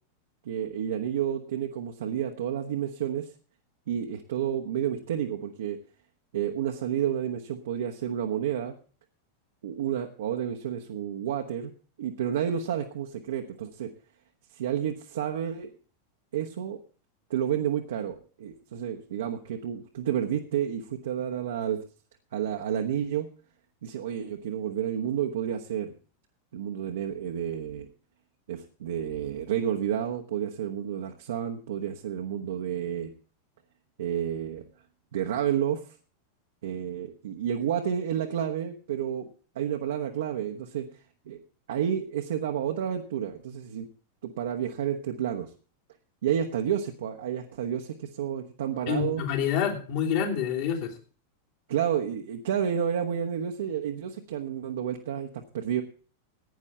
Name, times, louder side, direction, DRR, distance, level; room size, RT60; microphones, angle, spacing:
voice 1, 0.4-3.3 3.9-5.8 6.3-8.7 9.6-11.7 12.0-13.9 14.5-15.7 16.3-16.8 17.3-21.8 22.3-23.3 23.8-25.9 26.5-27.9 28.5-33.1 34.0-34.7 35.1-35.8 36.6-39.3 39.5-40.9 41.3-41.4 41.7-43.9 44.2-45.5 46.2-49.2 51.7-55.8, right 9 dB, 60° right, 3 dB, 1.2 m, -30 dB
voice 2, 48.9-50.9, left 8 dB, 50° left, 0 dB, 3.0 m, -27 dB
15.5 x 9.7 x 4.4 m, 0.40 s
figure-of-eight pair, 90°, 0 cm